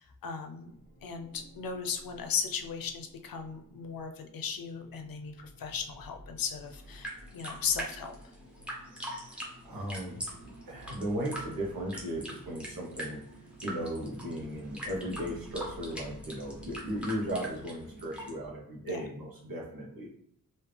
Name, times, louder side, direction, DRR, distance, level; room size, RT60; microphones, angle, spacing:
voice 1, 0.2-0.7 1.0-8.1 18.8-19.0, left 6 dB, 80° left, 5 dB, 0.5 m, -36 dB
sound 1, 0.7-18.5, right 1 dB, 50° right, 1.2 m, -53 dB
sound 2, 6.6-18.3, right 1 dB, 5° right, 0.8 m, -43 dB
voice 2, 9.2-10.4 10.7-13.2 13.6-20.1, equal, 85° right, -2 dB, 1.1 m, -36 dB
3.4 x 2.7 x 3.2 m, 0.71 s
wide cardioid pair, 145°, 34 cm